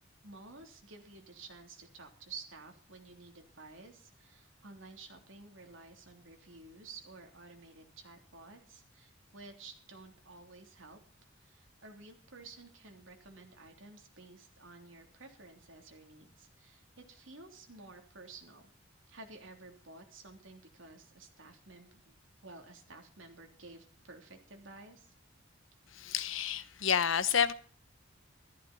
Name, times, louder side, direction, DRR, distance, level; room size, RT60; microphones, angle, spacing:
voice 1, 0.2-11.0 11.4-18.7 19.1-21.9 22.4-25.1, right 3 dB, 80° right, 3.2 m, -52 dB
voice 2, 25.9-27.5, left 7 dB, 80° left, 1.0 m, -29 dB
14.0 x 14.0 x 4.3 m
head